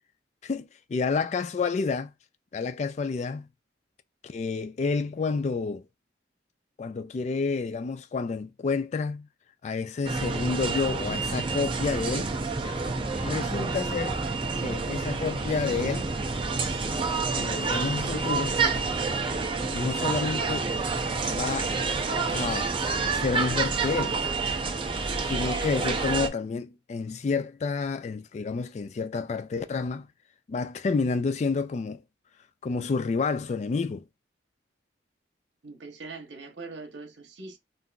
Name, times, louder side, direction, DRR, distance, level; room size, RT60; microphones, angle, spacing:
voice 1, 0.4-2.1 2.5-3.5 4.2-5.8 6.8-9.3 9.6-12.3 13.2-14.2 14.6-16.1 17.3-18.6 19.7-20.7 21.2-21.7 22.3-24.2 25.2-30.1 30.5-32.0 32.6-34.0, left 4 dB, 40° left, 0.3 m, -29 dB
sound 1, 10.0-26.3, right 4 dB, 30° right, 0.5 m, -28 dB
voice 2, 35.6-37.6, right 3 dB, 75° right, 0.9 m, -42 dB
3.7 x 2.6 x 2.2 m
head